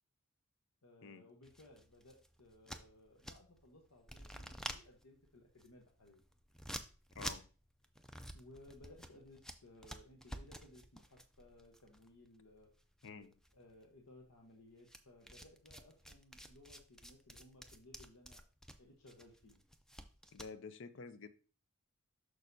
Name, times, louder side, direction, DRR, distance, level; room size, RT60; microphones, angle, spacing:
voice 1, 0.8-6.2 8.3-12.7 13.5-18.4 18.8-19.6, left 1 dB, 80° left, 1.0 m, -61 dB
sound 1, 1.4-3.7 4.0-12.7 13.0-13.8 14.9-20.5, equal, 5° left, 0.4 m, -50 dB
voice 2, 7.1-7.5 13.0-13.3 20.3-21.3, left 4 dB, 55° left, 0.5 m, -49 dB
6.3 x 6.3 x 2.7 m
head